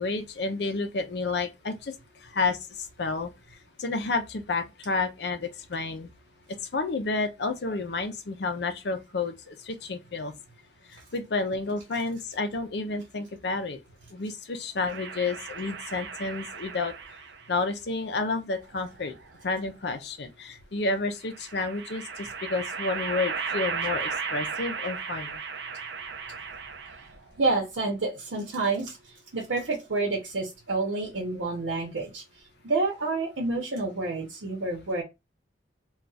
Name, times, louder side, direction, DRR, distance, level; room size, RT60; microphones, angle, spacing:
voice 1, 0.0-2.0 2.2-3.3 3.8-6.1 6.7-10.3 10.9-13.8 14.1-16.9 17.5-19.2 19.4-25.4, left 3 dB, 60° left, 0.5 m, -30 dB
sound 1, 14.9-17.5 18.6-19.6 21.2-27.2, right 5 dB, 70° right, 0.5 m, -35 dB
voice 2, 27.4-32.2 32.6-35.0, right 3 dB, 85° right, 0.9 m, -29 dB
2.4 x 2.3 x 4.0 m
head